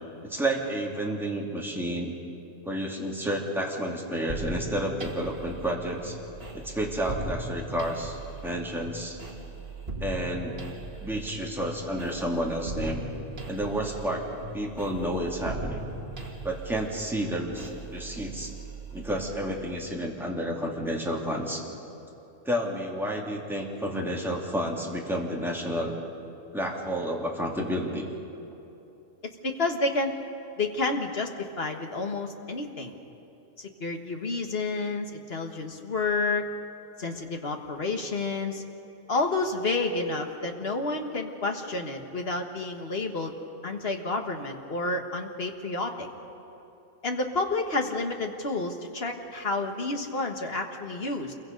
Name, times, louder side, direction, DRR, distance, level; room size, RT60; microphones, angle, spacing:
voice 1, 0.2-2.1 2.6-6.1 6.5-9.2 10.0-10.5 11.0-13.0 13.5-14.3 14.5-15.8 16.4-18.5 18.9-21.6 22.4-26.0 26.5-28.2, equal, ahead, -2 dB, 2.5 m, -30 dB
sound 1, 4.3-19.9, right 2 dB, 45° right, 2.3 m, -39 dB
voice 2, 29.4-30.1 30.6-32.9 33.6-36.4 37.0-38.6 39.1-43.3 43.6-46.1 47.0-51.3, left 3 dB, 50° left, 4 dB, 1.7 m, -30 dB
27.5 x 23.0 x 5.3 m, 2.9 s
omnidirectional pair, 1.4 m